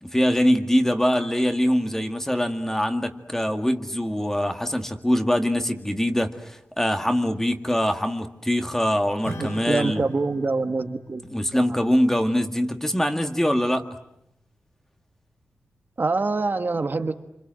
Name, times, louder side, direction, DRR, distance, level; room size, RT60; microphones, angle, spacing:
voice 1, 0.0-10.0 11.3-13.9, equal, 10° left, 6 dB, 2.0 m, -23 dB
Acoustic guitar / Strum, 9.2-14.0, equal, 85° left, 5.7 m, -42 dB
voice 2, 9.7-11.2 11.5-11.6 16.0-17.1, right 3 dB, 50° right, 7 dB, 1.5 m, -25 dB
28.0 x 26.5 x 7.7 m, 0.82 s
wide cardioid pair, 110°, 4 cm